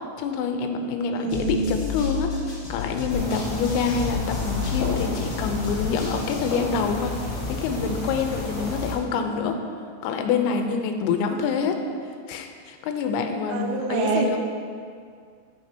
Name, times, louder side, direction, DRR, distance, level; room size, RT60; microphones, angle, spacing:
voice 1, 0.2-7.1 7.5-9.6 10.0-11.8 12.3-14.4, left 5 dB, 90° left, 5 dB, 3.4 m, -26 dB
voice 2, 1.1-1.7 11.3-11.5 13.5-14.4, right 5 dB, 90° right, 2 dB, 3.8 m, -26 dB
sound 1, 1.3-6.6, left 6 dB, 60° left, 1.1 m, -32 dB
sound 2, 3.1-8.9, left 2 dB, 45° left, 3.2 m, -31 dB
15.0 x 8.0 x 2.9 m, 2.2 s
omnidirectional pair, 6.0 m